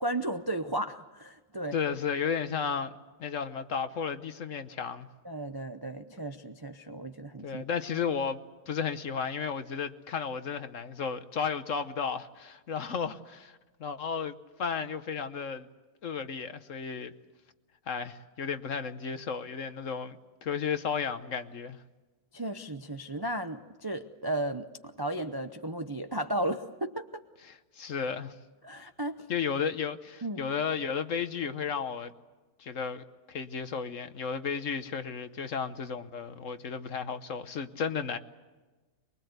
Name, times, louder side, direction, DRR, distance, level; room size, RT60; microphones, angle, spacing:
voice 1, 0.0-1.8 5.2-7.6 22.3-27.2 28.6-29.3 30.2-30.5, right 1 dB, 30° right, 0.4 m, -34 dB
voice 2, 1.7-2.9 3.2-5.1 7.4-15.7 16.0-17.1 17.9-21.8 27.5-28.3 29.3-32.1 32.6-38.2, left 6 dB, 55° left, 1.2 m, -33 dB
23.5 x 23.0 x 8.0 m
omnidirectional pair, 1.8 m